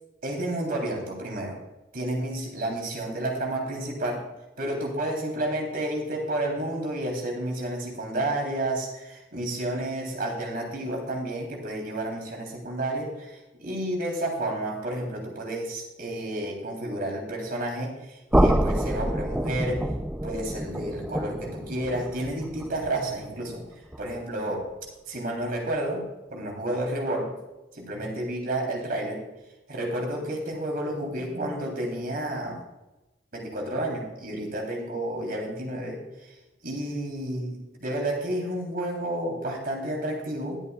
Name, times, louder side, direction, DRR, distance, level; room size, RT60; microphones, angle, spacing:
voice 1, 0.2-1.6 1.9-4.3 4.6-19.9 20.2-23.7 24.0-24.7 25.1-26.1 26.3-27.3 27.7-29.2 29.7-32.7 33.3-36.0 36.6-40.6, right 1 dB, 55° right, 0 dB, 3.5 m, -31 dB
sound 1, 18.3-24.2, right 1 dB, 5° right, 0.5 m, -27 dB
22.0 x 8.3 x 2.4 m, 1.0 s
head